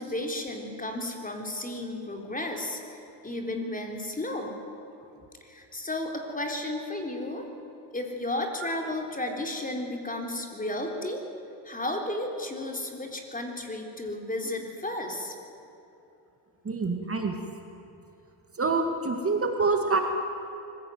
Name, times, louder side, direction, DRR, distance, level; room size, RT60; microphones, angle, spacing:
voice 1, 0.0-2.8 3.2-4.6 5.4-7.5 7.9-11.2 11.6-15.3, left 1 dB, 20° left, 3 dB, 3.9 m, -33 dB
voice 2, 16.6-17.3 18.6-20.0, right 4 dB, 30° right, 4 dB, 2.4 m, -26 dB
24.0 x 16.0 x 9.3 m, 2.9 s
cardioid pair, 85°, 46 cm